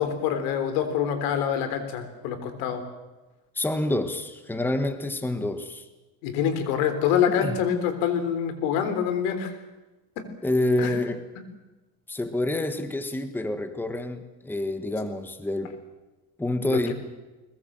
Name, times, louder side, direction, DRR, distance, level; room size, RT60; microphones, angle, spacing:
voice 1, 0.0-2.8 6.2-9.5 10.2-10.3 10.8-11.0 16.7-16.9, left 8 dB, 85° left, 9 dB, 3.8 m, -26 dB
voice 2, 3.5-5.8 7.4-7.6 10.4-11.2 12.1-15.7 16.4-16.9, left 1 dB, 5° left, 9 dB, 1.4 m, -27 dB
22.0 x 21.0 x 7.5 m, 1.1 s
cardioid pair, 135°, 42 cm